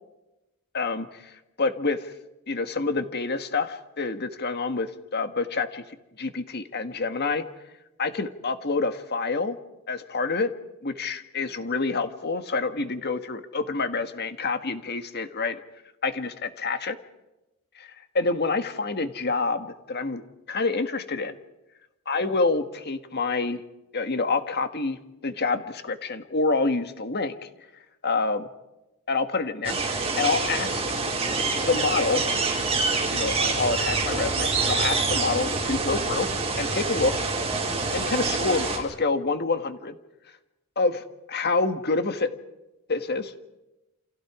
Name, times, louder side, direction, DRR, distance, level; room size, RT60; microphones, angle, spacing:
voice 1, 0.7-1.3 1.6-2.1 2.5-7.4 8.0-9.6 9.9-10.5 10.8-15.6 16.0-17.0 17.7-20.2 20.5-21.4 22.1-23.6 23.9-27.4 28.0-28.5 29.1-29.8 30.2-30.7 31.6-32.2 33.1-36.3 36.6-37.1 37.9-39.9 40.7-42.3 42.9-43.3, left 3 dB, 45° left, 8 dB, 1.7 m, -27 dB
sound 1, 29.6-38.8, right 3 dB, 25° right, 4.3 m, -26 dB
29.0 x 28.5 x 5.0 m, 0.99 s
head